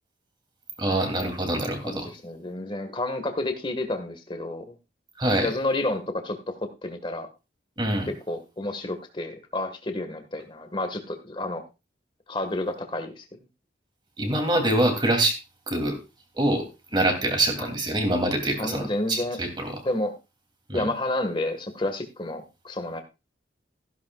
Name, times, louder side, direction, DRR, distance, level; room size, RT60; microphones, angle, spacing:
voice 1, 0.8-2.1 5.2-5.5 7.8-8.1 14.2-15.4 15.7-16.0 16.3-16.6 16.9-19.7 20.7-20.8, right 1 dB, 25° right, 4 dB, 2.8 m, -25 dB
voice 2, 1.8-4.7 5.4-6.5 6.8-7.3 8.3-11.6 12.3-13.2 17.6-17.7 18.5-19.4 19.8-20.1 20.7-23.0, left 2 dB, 30° left, 6 dB, 1.6 m, -30 dB
15.0 x 11.0 x 2.4 m, 0.27 s
head